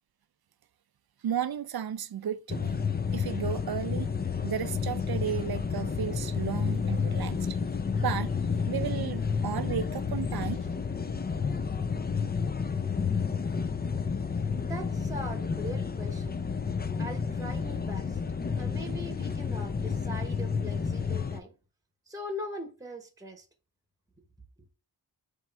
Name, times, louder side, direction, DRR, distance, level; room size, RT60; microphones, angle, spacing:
voice 1, 1.2-2.8 3.1-4.1 4.4-7.6 8.0-8.3 8.7-10.6, right 9 dB, 60° right, 0.5 m, -33 dB
sound 1, 2.5-21.4, left 5 dB, 25° left, 0.4 m, -31 dB
sound 2, 5.3-11.9, left 2 dB, 65° left, 1.5 m, -50 dB
voice 2, 14.6-16.3 17.0-18.2 18.6-21.5 22.1-23.5, equal, 10° right, 1.0 m, -41 dB
3.6 x 3.1 x 4.5 m
wide cardioid pair, 60°, 42 cm